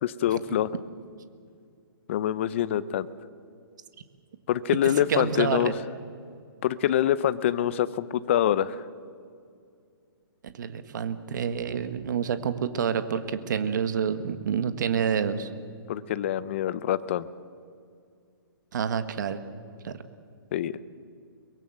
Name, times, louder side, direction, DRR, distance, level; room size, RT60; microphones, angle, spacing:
voice 1, 0.0-0.7 2.1-3.1 4.5-5.7 6.6-8.8 15.9-17.3 20.5-20.8, left 11 dB, 30° left, 16 dB, 0.7 m, -25 dB
voice 2, 5.1-5.7 10.4-15.5 18.7-19.4 19.8-20.0, right 7 dB, 50° right, 11 dB, 1.5 m, -28 dB
23.0 x 22.0 x 7.8 m, 2.3 s
hypercardioid pair, 170°, 12 cm